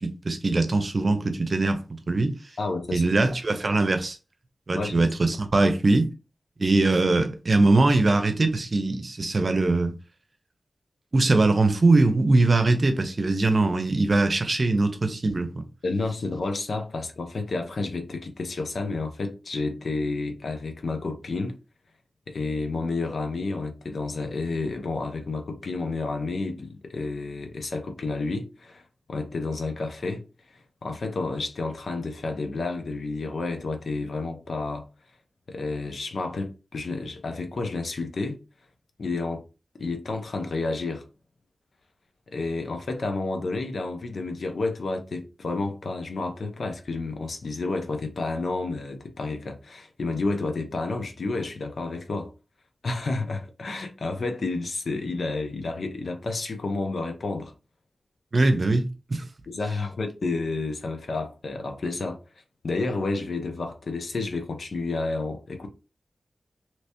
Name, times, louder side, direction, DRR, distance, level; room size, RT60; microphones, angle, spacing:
voice 1, 0.0-2.4 2.9-4.2 4.7-6.1 6.6-9.9 11.1-15.6 58.3-59.2, right 2 dB, 50° right, 0.7 m, -22 dB
voice 2, 2.6-3.0 4.7-5.0 15.8-21.6 22.3-28.8 29.1-30.2 30.8-34.9 35.5-38.4 39.0-39.4 39.8-41.0 42.3-52.3 52.8-57.5 59.5-62.2 62.6-65.7, left 3 dB, 75° left, 0.7 m, -30 dB
3.2 x 3.0 x 2.9 m
wide cardioid pair, 75°, 0 cm